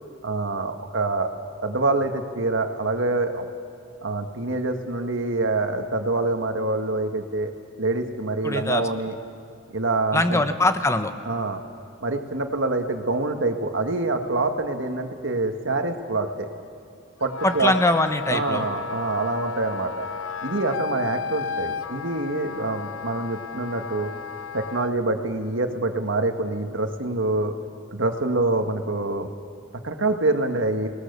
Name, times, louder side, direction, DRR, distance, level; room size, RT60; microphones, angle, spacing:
voice 1, 0.2-1.3 1.6-3.4 4.0-7.5 7.8-9.1 9.7-10.4 11.2-11.6 12.0-16.5 17.2-17.7 18.3-20.1 20.4-24.1 24.5-27.5 27.9-29.3 29.8-30.9, right 2 dB, 70° right, 5 dB, 1.7 m, -25 dB
voice 2, 8.4-8.8 10.1-11.1 17.4-18.7, left 2 dB, 15° left, 8 dB, 1.1 m, -22 dB
Wind instrument woodwind instrument, 17.2-24.9, left 6 dB, 85° left, 0.6 m, -34 dB
29.5 x 19.5 x 6.8 m, 2.4 s
head